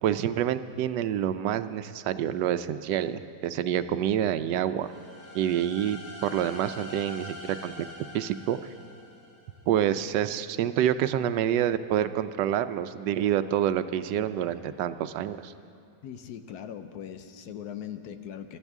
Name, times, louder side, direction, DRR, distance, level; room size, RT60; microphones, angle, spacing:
voice 1, 0.0-4.9 5.3-7.9 8.1-8.6 9.7-15.5, right 10 dB, 80° right, 12 dB, 1.2 m, -27 dB
sound 1, 4.8-9.6, left 1 dB, 25° left, 4.2 m, -44 dB
voice 2, 16.0-18.6, left 9 dB, 70° left, 9 dB, 1.2 m, -40 dB
24.0 x 13.5 x 3.6 m, 2.7 s
omnidirectional pair, 1.8 m